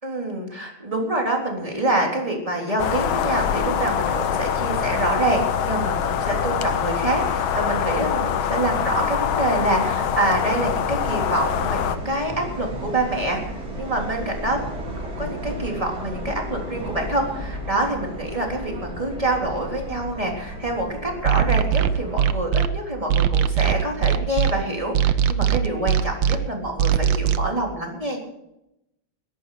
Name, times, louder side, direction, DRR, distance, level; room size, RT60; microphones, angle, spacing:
voice 1, 0.0-13.4 13.8-14.6 15.0-28.2, right 1 dB, 15° right, 0 dB, 3.6 m, -26 dB
sound 1, 2.8-12.0, left 8 dB, 85° left, 1.8 m, -24 dB
Subway metro underground, 3.5-22.2, right 1 dB, 45° right, 4.1 m, -35 dB
sound 2, 21.2-22.7 23.1-24.5 24.9-26.4 26.8-27.4, right 9 dB, 75° right, 1.5 m, -19 dB
21.5 x 11.0 x 5.0 m, 0.86 s
omnidirectional pair, 2.2 m